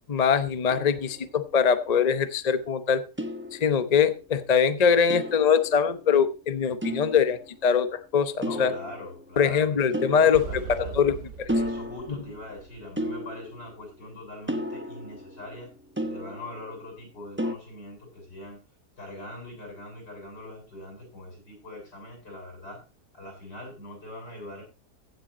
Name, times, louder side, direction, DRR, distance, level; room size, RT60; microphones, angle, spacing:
voice 1, 0.1-3.0 3.5-8.7 9.4-10.4 10.8-11.1, left 7 dB, 35° left, 11 dB, 0.6 m, -22 dB
sound 1, 0.7-1.7 3.2-4.2 5.1-6.3 6.8-7.7 8.4-9.4 9.9-11.2 11.5-12.5 13.0-14.0 14.5-16.9 17.4-17.5, equal, 10° right, 0.7 m, -34 dB
voice 2, 8.4-11.1 11.5-15.7 16.0-18.6 19.0-22.8 23.1-24.6, left 1 dB, 75° left, 1 dB, 8.3 m, -42 dB
sound 2, 10.3-13.3, right 8 dB, 55° right, 1.0 m, -40 dB
15.5 x 7.7 x 4.2 m, 0.31 s
omnidirectional pair, 1.8 m